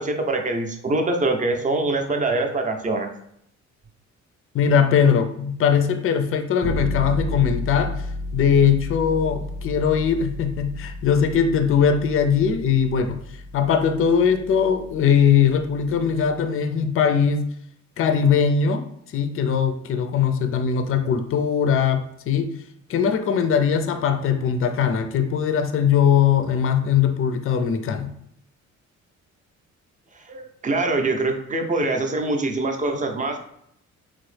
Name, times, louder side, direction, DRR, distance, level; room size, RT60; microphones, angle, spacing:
voice 1, 0.0-3.1 30.2-33.4, right 2 dB, 25° right, 4 dB, 0.5 m, -24 dB
voice 2, 4.5-8.1 8.3-13.2 13.5-17.5 18.0-18.8 19.1-22.5 22.9-28.1, left 7 dB, 45° left, 7 dB, 0.4 m, -20 dB
sound 1, 6.6-16.4, left 1 dB, 70° right, 0.8 m, -33 dB
3.0 x 2.0 x 3.2 m, 0.72 s
cardioid pair, 90°, 30 cm